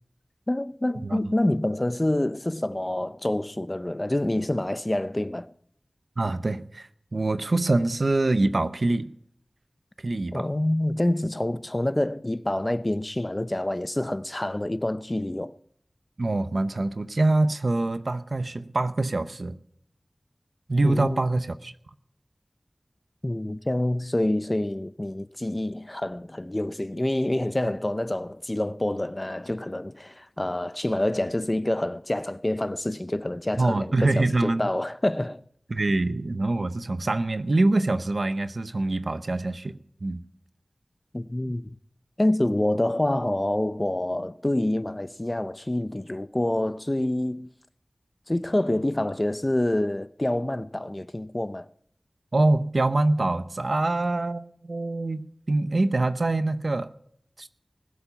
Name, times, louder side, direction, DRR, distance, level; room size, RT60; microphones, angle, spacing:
voice 1, 0.5-5.5 10.3-15.5 20.8-21.2 23.2-35.4 41.1-41.8 42.2-47.5 48.3-51.7, left 1 dB, 30° left, 0.6 m, -27 dB
voice 2, 1.0-1.3 6.2-9.1 10.0-10.5 16.2-19.6 20.7-21.7 33.6-34.7 35.7-40.2 41.4-41.5 52.3-56.9 57.4-57.5, right 2 dB, 70° right, 0.7 m, -25 dB
20.0 x 7.2 x 5.7 m
wide cardioid pair, 60°, 0 cm